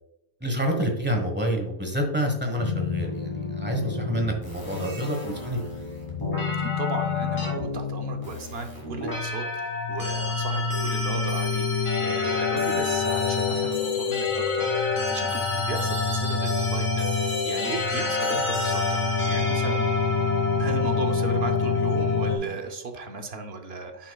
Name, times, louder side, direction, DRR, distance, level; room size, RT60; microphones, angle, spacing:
voice 1, 0.4-5.6, equal, 10° right, 2 dB, 1.1 m, -27 dB
sound 1, 2.6-22.4, left 4 dB, 20° left, 2.4 m, -27 dB
voice 2, 6.5-19.9 20.6-24.1, right 4 dB, 50° right, 5 dB, 0.9 m, -36 dB
10.0 x 5.7 x 2.3 m, 0.92 s
omnidirectional pair, 1.5 m